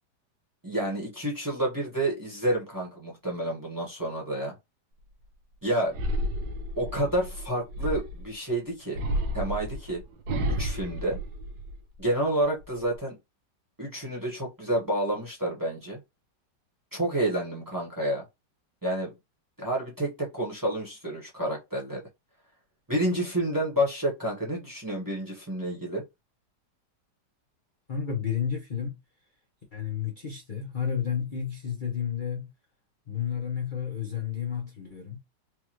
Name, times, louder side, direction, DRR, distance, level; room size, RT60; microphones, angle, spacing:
voice 1, 0.6-4.5 5.6-5.9 6.8-9.0 9.3-10.0 10.5-11.2 12.0-13.1 13.8-16.0 16.9-18.2 18.8-19.1 19.6-22.0 22.9-26.0, right 1 dB, 15° right, 1.2 m, -29 dB
sound 1, 5.9-8.3 8.9-12.0 12.4-13.0, equal, 80° right, 1.4 m, -31 dB
voice 2, 27.9-29.0 29.7-32.5 33.1-35.2, left 8 dB, 40° left, 0.8 m, -31 dB
4.6 x 2.5 x 3.0 m
omnidirectional pair, 1.9 m